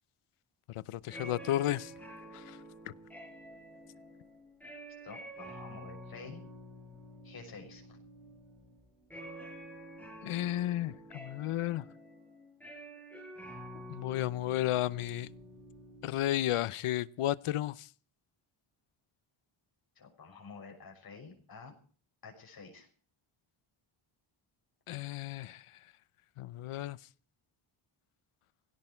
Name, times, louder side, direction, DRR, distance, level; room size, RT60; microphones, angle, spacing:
voice 1, 0.7-1.9 2.3-2.6 10.2-11.8 13.9-15.3 16.0-17.9 24.9-25.6 26.4-27.0, left 13 dB, 85° left, 0.8 m, -33 dB
sound 1, 1.0-16.1, equal, 5° left, 6.2 m, -49 dB
voice 2, 5.0-6.4 7.2-7.9 20.0-21.7 22.2-22.9, left 4 dB, 45° left, 6.1 m, -49 dB
19.0 x 17.0 x 4.5 m
wide cardioid pair, 175°, 50 cm